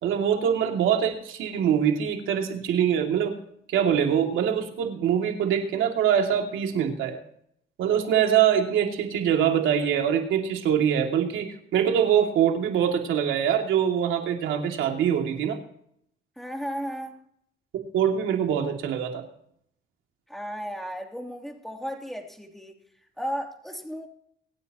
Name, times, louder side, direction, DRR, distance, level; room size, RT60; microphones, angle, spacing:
voice 1, 0.0-3.3 3.7-7.2 7.8-15.6 17.9-19.2, right 9 dB, 85° right, 3 dB, 2.7 m, -24 dB
voice 2, 16.4-17.2 20.3-22.8 23.2-24.1, equal, ahead, 3 dB, 3.0 m, -34 dB
25.5 x 9.5 x 3.0 m, 0.71 s
cardioid pair, 90°, 20 cm